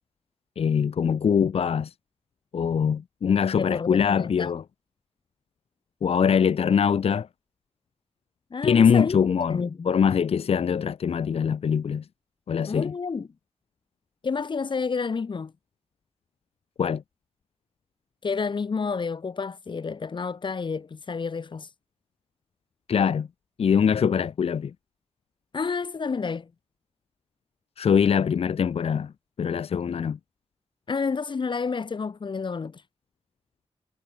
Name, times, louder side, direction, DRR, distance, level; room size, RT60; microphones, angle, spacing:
voice 1, 0.6-1.9 2.5-4.6 6.0-7.3 8.6-12.0 12.5-12.9 16.8-17.0 22.9-23.3 23.6-24.7 27.8-29.1 29.4-30.2, left 7 dB, 60° left, 0.8 m, -23 dB
voice 2, 3.6-4.5 8.5-9.9 12.7-13.3 14.2-15.5 18.2-21.7 25.5-26.5 30.9-32.8, left 5 dB, 45° left, 2.3 m, -30 dB
wide cardioid pair, 140°, 11 cm